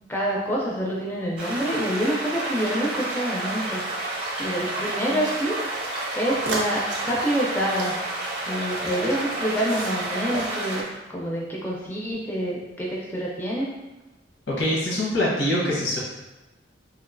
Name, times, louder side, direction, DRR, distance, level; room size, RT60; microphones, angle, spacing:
voice 1, 0.1-3.8 4.1-5.6 6.2-8.0 8.5-10.9 11.1-13.7, equal, 10° left, -4 dB, 0.4 m, -27 dB
sound 1, 1.4-10.8, right 2 dB, 30° right, 0.6 m, -30 dB
sound 2, 4.0-4.6 5.2-9.1 9.5-10.1 10.3-10.9, right 2 dB, 70° right, 0.5 m, -37 dB
voice 2, 14.5-16.0, left 1 dB, 80° left, -4 dB, 0.8 m, -24 dB
2.9 x 2.3 x 2.5 m, 1.1 s
head